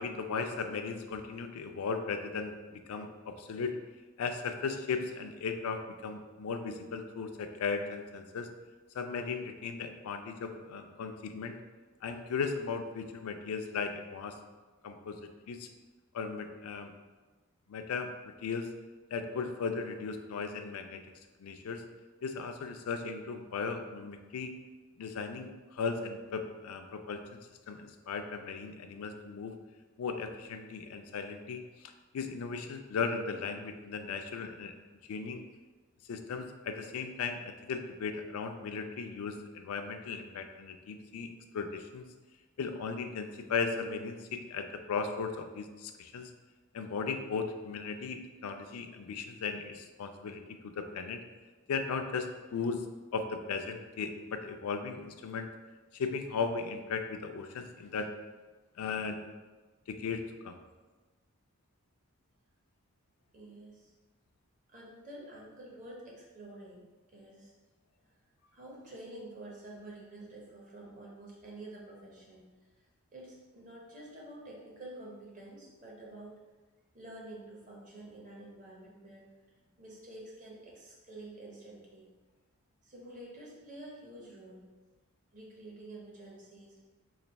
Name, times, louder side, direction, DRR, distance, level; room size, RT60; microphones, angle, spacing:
voice 1, 0.0-3.7 4.2-8.5 8.9-11.6 12.0-14.4 14.8-15.2 15.5-15.7 16.1-16.9 17.7-18.7 19.1-21.0 21.4-21.8 22.2-24.5 25.0-27.4 27.7-29.6 30.0-31.6 32.1-34.7 35.1-35.4 36.1-42.0 42.6-46.3 46.7-51.2 51.7-52.8 53.1-55.5 55.9-58.1 58.8-59.2 59.9-60.6, left 5 dB, 80° left, 6 dB, 0.4 m, -37 dB
voice 2, 63.3-63.9 64.7-67.5 68.5-72.5 73.1-76.4 76.9-79.3 79.8-82.1 82.8-84.8 85.3-86.8, right 1 dB, 35° right, -4 dB, 0.8 m, -49 dB
3.2 x 2.5 x 4.0 m, 1.3 s
head